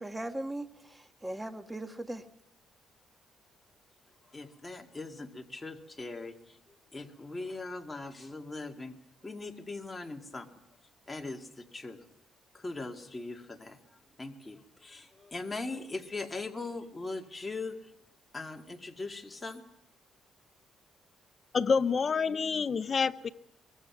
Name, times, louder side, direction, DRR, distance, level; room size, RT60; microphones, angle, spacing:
voice 1, 0.0-2.2, right 1 dB, 10° right, 8 dB, 1.6 m, -39 dB
voice 2, 4.3-6.6 6.9-8.9 9.2-10.5 11.1-12.0 12.5-17.9 18.3-19.6, left 3 dB, 20° left, 4 dB, 2.1 m, -40 dB
voice 3, 21.5-23.3, left 5 dB, 40° left, 13 dB, 0.8 m, -27 dB
23.0 x 22.5 x 6.0 m, 0.85 s
cardioid pair, 90°, 0 cm